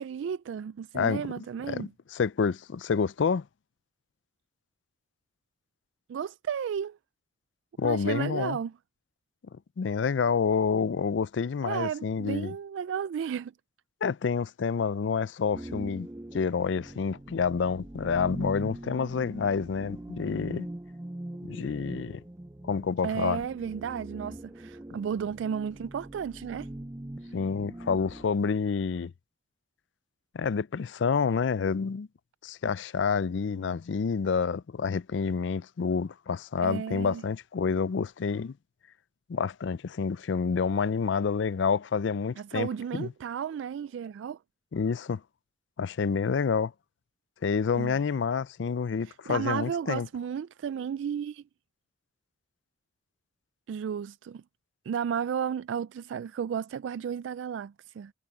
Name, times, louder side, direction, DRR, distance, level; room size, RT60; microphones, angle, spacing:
voice 1, 0.0-1.9 6.1-7.0 7.8-8.7 11.6-13.5 23.0-26.7 36.6-37.2 42.4-44.4 47.8-48.0 49.0-51.4 53.7-54.4 54.9-58.1, right 7 dB, 85° right, 0.3 m, -33 dB
voice 2, 0.9-1.3 1.7-3.4 7.8-8.6 9.8-12.6 14.0-16.1 16.3-20.7 21.5-22.2 22.6-23.4 27.3-29.1 30.3-32.1 32.4-38.5 39.3-43.1 44.7-45.2 45.8-46.7 47.4-50.1, left 5 dB, 75° left, 0.4 m, -28 dB
sound 1, 15.5-28.3, right 1 dB, 15° right, 0.5 m, -42 dB
head